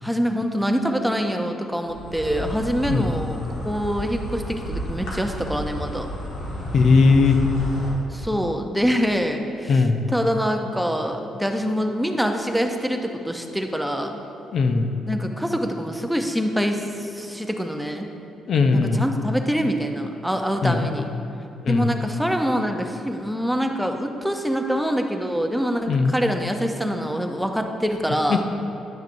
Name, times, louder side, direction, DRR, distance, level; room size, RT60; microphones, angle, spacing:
voice 1, 0.0-6.1 8.1-14.2 15.1-18.1 18.7-21.1 21.7-28.4, equal, 5° right, 4 dB, 0.5 m, -25 dB
Insect, 1.9-7.9, equal, 80° left, 1.5 m, -32 dB
voice 2, 6.7-7.4 9.7-10.0 14.5-14.9 18.5-19.1 20.6-20.9 21.6-21.9 25.9-26.2 28.3-28.4, left 4 dB, 60° left, 6 dB, 0.5 m, -18 dB
10.5 x 6.2 x 2.6 m, 2.8 s
cardioid pair, 90°, 0 cm